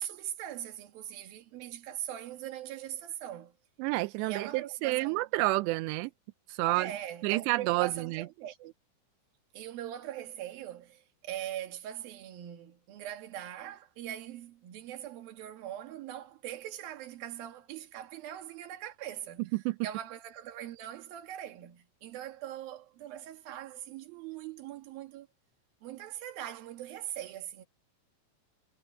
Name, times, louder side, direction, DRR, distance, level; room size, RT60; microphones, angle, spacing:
voice 1, 0.0-3.5 4.2-5.2 6.7-8.7 9.5-25.3 25.8-27.6, right 11 dB, 60° right, 3.1 m, -41 dB
voice 2, 3.8-6.1 6.5-6.9 7.2-8.2 19.7-19.8, right 20 dB, 85° right, 2.5 m, -29 dB
omnidirectional pair, 5.7 m